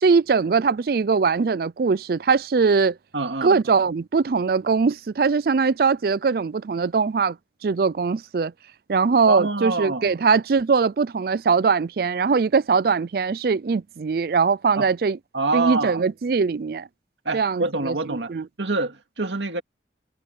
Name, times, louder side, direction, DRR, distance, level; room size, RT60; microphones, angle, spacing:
voice 1, 0.0-3.0 3.4-7.4 7.6-8.5 8.9-15.2 15.5-16.9 17.3-18.5, right 5 dB, 55° right, 0.4 m, -21 dB
voice 2, 3.1-3.6 9.3-10.1 14.8-14.9 15.3-16.0 17.2-18.3 18.6-19.6, right 3 dB, 90° right, 2.2 m, -26 dB
head